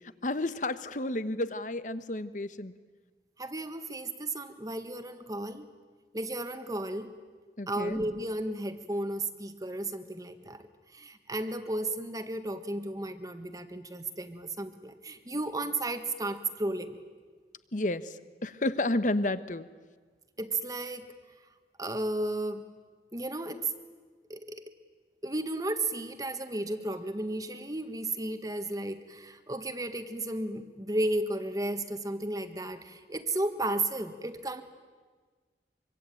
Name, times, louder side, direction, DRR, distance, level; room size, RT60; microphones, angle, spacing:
voice 1, 0.2-2.7 7.6-8.0 17.7-18.1 18.4-19.7, left 2 dB, 45° left, 13 dB, 1.0 m, -31 dB
voice 2, 3.4-5.7 6.1-7.1 7.7-17.0 20.4-21.1 21.8-22.6 23.1-23.7 24.3-24.6 25.2-34.6, right 2 dB, 20° right, 8 dB, 1.5 m, -34 dB
24.5 x 24.5 x 9.1 m, 1.5 s
head